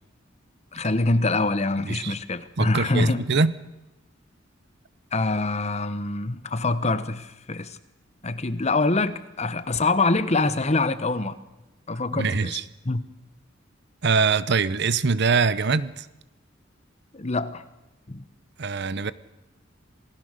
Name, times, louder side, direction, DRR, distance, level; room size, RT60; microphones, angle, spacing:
voice 1, 0.7-3.2 5.1-7.7 8.2-11.4 11.9-12.6 12.8-13.0 17.1-17.6 18.1-18.2, left 3 dB, 35° left, 13 dB, 1.1 m, -25 dB
voice 2, 1.8-2.2 2.6-3.5 12.1-12.6 14.0-16.1 18.6-19.1, right 4 dB, 60° right, 17 dB, 0.8 m, -23 dB
27.0 x 17.5 x 6.6 m, 0.98 s
head